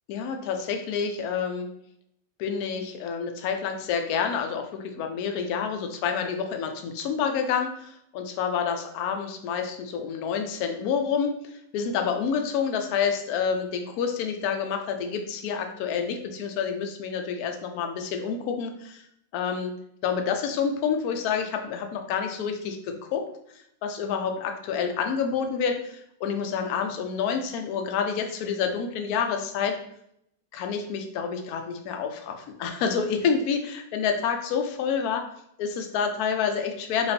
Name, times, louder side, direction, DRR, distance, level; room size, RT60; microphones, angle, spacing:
voice 1, 0.1-1.7 2.4-19.0 19.3-19.8 20.0-23.2 23.8-29.8 30.5-35.2 35.6-37.1, left 6 dB, 75° left, 5 dB, 0.8 m, -28 dB
5.1 x 2.4 x 2.6 m, 0.73 s
omnidirectional pair, 2.1 m